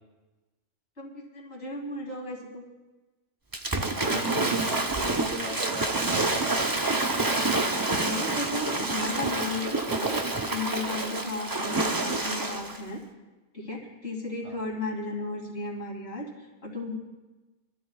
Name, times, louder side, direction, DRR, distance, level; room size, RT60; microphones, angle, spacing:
voice 1, 1.0-2.7 7.9-13.0 13.5-16.3 16.6-17.0, left 2 dB, 60° left, -2 dB, 3.1 m, -35 dB
Waves surf / Splash splatter, 3.5-12.8, right 2 dB, 20° right, 0.7 m, -28 dB
voice 2, 4.0-6.8 14.4-14.6, right 2 dB, 75° right, 3 dB, 1.7 m, -37 dB
25.0 x 13.0 x 2.4 m, 1.2 s
omnidirectional pair, 1.2 m